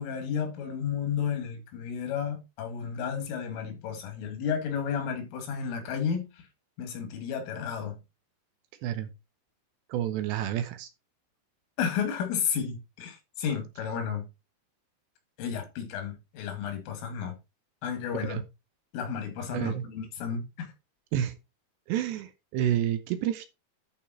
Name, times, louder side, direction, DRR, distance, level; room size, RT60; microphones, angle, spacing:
voice 1, 0.0-6.3 6.8-8.0 11.8-14.3 15.4-17.4 17.8-18.4 18.9-20.7, left 7 dB, 85° left, 4.9 m, -32 dB
voice 2, 9.9-10.9 18.1-18.4 19.5-19.8 21.1-21.3 21.9-23.5, right 11 dB, 75° right, 2.8 m, -29 dB
11.5 x 5.2 x 4.3 m
omnidirectional pair, 5.5 m